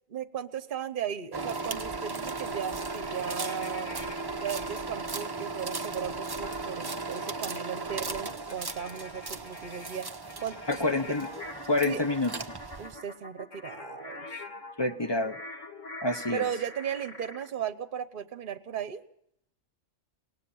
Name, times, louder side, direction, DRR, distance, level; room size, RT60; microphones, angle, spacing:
voice 1, 0.1-3.9 4.4-10.1 10.4-11.1 11.8-12.0 12.8-14.4 16.3-19.0, right 8 dB, 45° right, 12 dB, 1.1 m, -36 dB
sound 1, 1.3-13.0, right 3 dB, 20° right, 0.7 m, -36 dB
sound 2, 2.7-4.8 6.4-17.5, left 2 dB, 65° left, 2.8 m, -45 dB
voice 2, 10.7-11.3 11.7-12.3 14.8-15.4 16.0-16.5, left 2 dB, 25° left, 8 dB, 0.8 m, -27 dB
23.0 x 18.5 x 7.1 m, 0.73 s
omnidirectional pair, 1.4 m